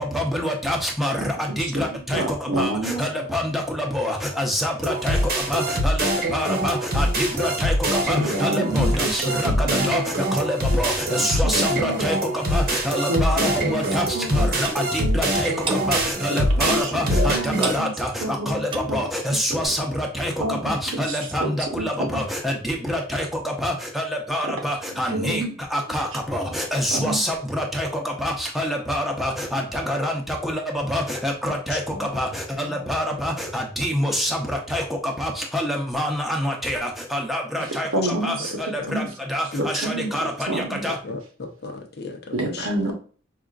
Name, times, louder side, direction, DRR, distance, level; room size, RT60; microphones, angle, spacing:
voice 1, 0.0-5.2 5.5-25.4 25.7-37.9 38.2-39.0 39.3-41.0, equal, ahead, 0 dB, 0.7 m, -26 dB
voice 2, 1.5-1.8 2.1-3.3 8.1-10.0 11.2-12.1 13.1-13.8 14.1-14.5 15.0-15.2 16.3-17.9 18.2-19.0 19.4-19.7 20.4-20.7 21.1-22.2 24.8-25.6 25.9-26.0 26.9-27.2 37.6-38.6 38.8-39.1 39.6-40.9 42.3-42.9, right 2 dB, 90° right, 1 dB, 1.0 m, -29 dB
sound 1, 4.8-17.8, right 1 dB, 50° right, 0.9 m, -24 dB
Clock, 14.6-14.8 15.6-15.9 16.7-17.0 17.6-17.9 18.6-18.9 19.6-19.7, right 2 dB, 25° right, 0.4 m, -29 dB
voice 3, 31.5-32.1 32.5-32.8 33.1-33.2 37.6-37.7 38.8-38.9 39.5-39.7 40.8-42.7, left 3 dB, 55° left, 3 dB, 0.7 m, -35 dB
4.9 x 2.4 x 2.4 m, 0.40 s
head